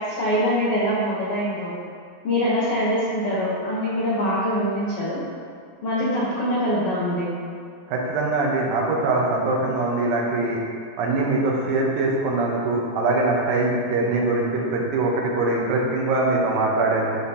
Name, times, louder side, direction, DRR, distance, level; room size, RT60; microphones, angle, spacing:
voice 1, 0.0-1.7 2.2-5.2 5.8-7.3, equal, 70° left, -9 dB, 1.4 m, -23 dB
voice 2, 7.9-10.6 11.0-17.2, right 2 dB, 85° right, -2 dB, 2.7 m, -22 dB
12.5 x 4.3 x 2.8 m, 2.2 s
omnidirectional pair, 4.2 m